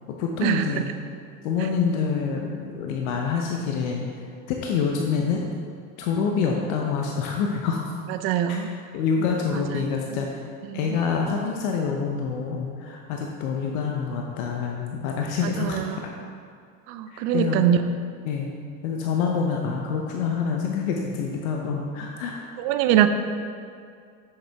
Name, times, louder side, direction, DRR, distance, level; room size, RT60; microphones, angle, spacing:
voice 1, 0.2-0.9 1.4-4.1 4.5-5.5 6.0-7.9 8.5-8.6 8.9-10.4 10.7-16.1 17.1-17.6 18.2-18.5 18.8-22.4, left 5 dB, 75° left, 0 dB, 0.9 m, -26 dB
voice 2, 8.2-8.7 9.5-9.6 10.7-10.9 15.6-15.8 16.9-17.8 22.6-23.1, right 11 dB, 65° right, 9 dB, 0.6 m, -22 dB
7.3 x 6.8 x 3.5 m, 2.3 s
supercardioid pair, 100°, 41 cm